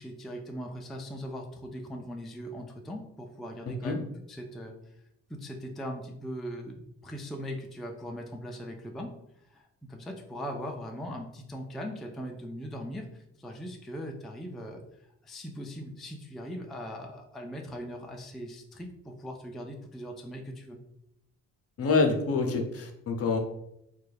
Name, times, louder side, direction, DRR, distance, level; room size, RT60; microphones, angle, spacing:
voice 1, 0.0-5.0 5.3-9.1 9.5-14.8 15.2-20.8, equal, ahead, 1 dB, 0.3 m, -40 dB
voice 2, 21.8-23.4, left 4 dB, 50° left, 4 dB, 0.6 m, -26 dB
3.1 x 2.3 x 3.3 m, 0.81 s
cardioid pair, 90°, 30 cm